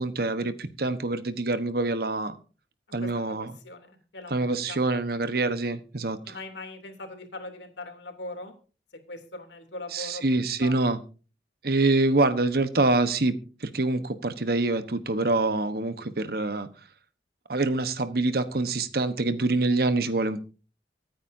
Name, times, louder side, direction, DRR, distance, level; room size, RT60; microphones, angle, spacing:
voice 1, 0.0-2.4 2.9-3.5 4.3-6.3 9.9-11.0 11.6-13.4 13.6-16.7 17.5-20.4, right 2 dB, 60° right, 1.2 m, -25 dB
voice 2, 3.4-4.8 6.2-8.5 9.1-10.9, left 2 dB, 90° left, 3.1 m, -41 dB
24.5 x 9.3 x 2.8 m
head